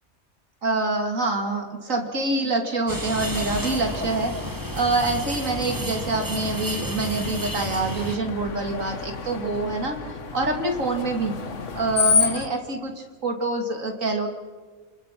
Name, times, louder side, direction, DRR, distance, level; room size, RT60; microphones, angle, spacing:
voice 1, 0.6-4.3 4.7-10.0 10.3-11.4 11.7-14.3, right 2 dB, 70° right, 4 dB, 2.9 m, -26 dB
sound 1, 2.9-8.2, right 1 dB, 15° right, 1.4 m, -32 dB
Screech, 3.2-12.5, left 5 dB, 60° left, 1.7 m, -31 dB
29.5 x 20.5 x 6.0 m, 1.5 s
omnidirectional pair, 1.4 m